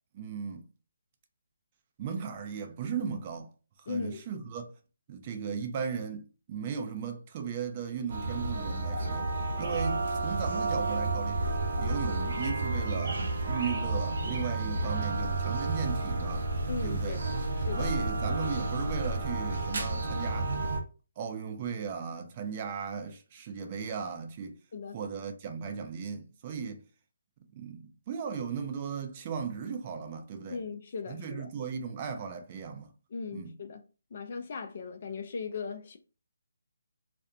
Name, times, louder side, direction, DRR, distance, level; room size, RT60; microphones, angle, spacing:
voice 1, 0.1-0.7 2.0-3.5 3.9-4.7 5.1-9.3 9.6-11.4 11.8-16.5 16.8-17.2 17.8-20.5 21.2-24.6 24.9-26.8 27.5-30.6 31.1-32.9 33.3-33.5, right 6 dB, 30° right, 0.4 m, -36 dB
voice 2, 3.9-4.2 16.7-17.2 17.6-17.9 24.7-25.0 30.5-31.5 33.1-33.8 34.1-36.0, left 5 dB, 45° left, 0.4 m, -38 dB
sound 1, 8.1-20.8, right 2 dB, 60° right, 0.7 m, -31 dB
2.5 x 2.0 x 2.7 m
figure-of-eight pair, 145°, 0 cm